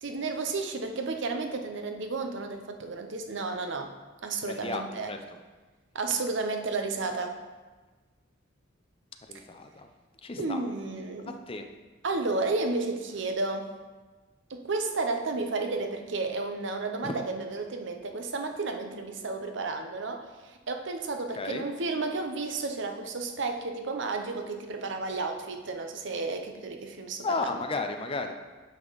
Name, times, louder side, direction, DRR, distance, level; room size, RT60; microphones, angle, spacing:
voice 1, 0.0-3.9 4.2-5.1 5.9-7.4 10.4-11.4 12.0-13.7 14.5-27.5, right 3 dB, 65° right, 5 dB, 0.8 m, -32 dB
voice 2, 4.4-5.2 9.3-9.9 10.2-10.6 11.5-11.7 17.0-17.1 21.4-21.7 27.2-28.3, left 3 dB, 30° left, 6 dB, 0.6 m, -33 dB
8.8 x 5.3 x 4.0 m, 1.3 s
head